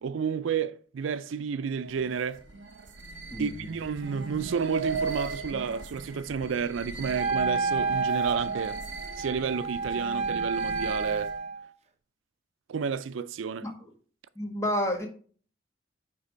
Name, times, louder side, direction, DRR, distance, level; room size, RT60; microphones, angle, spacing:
voice 1, 0.0-2.4 3.4-8.8 9.2-11.3 12.7-13.7, right 6 dB, 80° right, 0.4 m, -31 dB
sound 1, 1.8-11.5, right 4 dB, 60° right, 1.0 m, -38 dB
voice 2, 3.3-3.7 13.6-13.7 14.3-15.1, equal, 15° left, 1.5 m, -30 dB
Wind instrument woodwind instrument, 7.2-11.7, right 4 dB, 35° right, 0.6 m, -30 dB
9.5 x 3.4 x 5.1 m
head